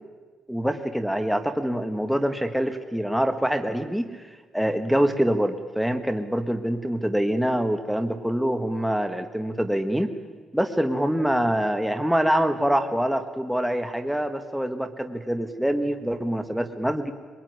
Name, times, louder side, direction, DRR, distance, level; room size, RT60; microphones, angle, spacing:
voice 1, 0.5-4.1 4.5-10.1 10.5-17.1, equal, ahead, 7 dB, 1.5 m, -25 dB
23.5 x 22.0 x 9.6 m, 1.5 s
cardioid pair, 90°, 0 cm